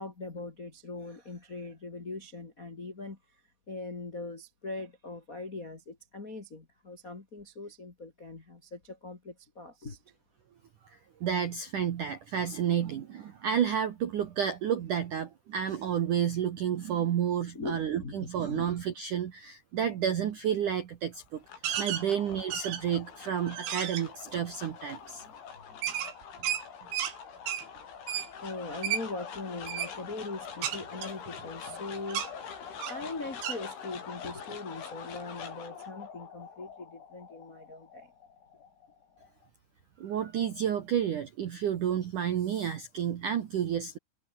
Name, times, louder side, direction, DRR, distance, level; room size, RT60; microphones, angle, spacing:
voice 1, 0.0-3.2 3.7-10.0 17.5-18.7 25.2-25.3 25.7-25.8 27.7-27.8 28.4-38.1, left 3 dB, 45° left, 1.0 m, -41 dB
voice 2, 11.2-25.2 40.0-44.0, right 9 dB, 70° right, 1.9 m, -30 dB
sound 1, 21.2-39.5, left 7 dB, 65° left, 7.0 m, -45 dB
sound 2, 21.6-22.0 22.5-23.0 23.5-24.0 25.8-27.1 27.5-27.6 28.1-28.3 28.8-29.0 29.6-29.9 30.6-31.8 32.1-32.3 32.8-33.0 33.4-33.6, right 10 dB, 90° right, 5.6 m, -33 dB
omnidirectional pair, 5.9 m